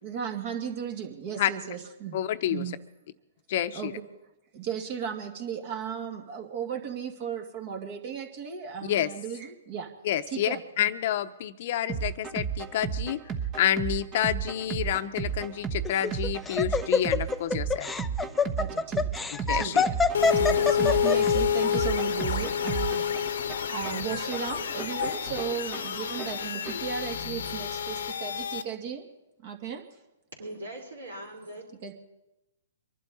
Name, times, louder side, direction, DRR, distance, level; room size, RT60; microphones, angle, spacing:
voice 1, 0.0-2.2 2.5-2.8 3.7-4.0 4.5-9.9 10.3-10.9 18.6-19.9 20.4-23.4 23.7-29.1 29.4-29.8 31.8-31.9, right 7 dB, 45° right, 5 dB, 2.3 m, -36 dB
voice 2, 2.1-2.6 3.5-3.9 8.8-9.1 10.0-10.5 10.8-13.2 13.6-17.9 19.5-19.8, left 11 dB, 50° left, 11 dB, 0.8 m, -28 dB
sound 1, 11.9-26.9, right 7 dB, 25° right, 1.2 m, -34 dB
Laughter, 15.9-21.3, left 4 dB, 10° left, 0.5 m, -25 dB
sound 2, 20.1-28.6, left 8 dB, 75° left, 1.0 m, -28 dB
voice 3, 30.4-31.6, right 1 dB, 85° right, 0 dB, 4.9 m, -40 dB
24.5 x 11.5 x 4.2 m, 0.94 s
hypercardioid pair, 135°, 0 cm